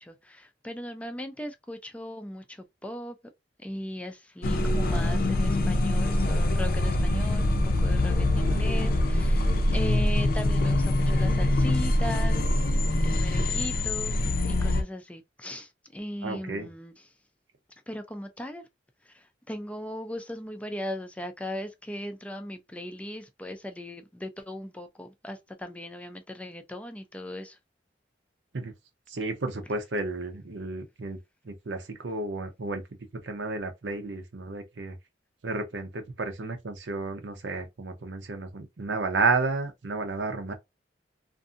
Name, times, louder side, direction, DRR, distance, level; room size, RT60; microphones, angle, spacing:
voice 1, 0.0-3.2 3.6-12.5 13.0-16.9 17.9-18.6 19.1-27.6, equal, 10° left, 0.4 m, -38 dB
sound 1, 4.4-14.8, left 1 dB, 55° left, 0.5 m, -24 dB
voice 2, 16.2-16.7 28.5-28.7 29.1-31.2 31.4-32.8 33.2-35.0 35.4-40.5, right 3 dB, 85° right, 0.7 m, -31 dB
2.6 x 2.5 x 2.5 m
head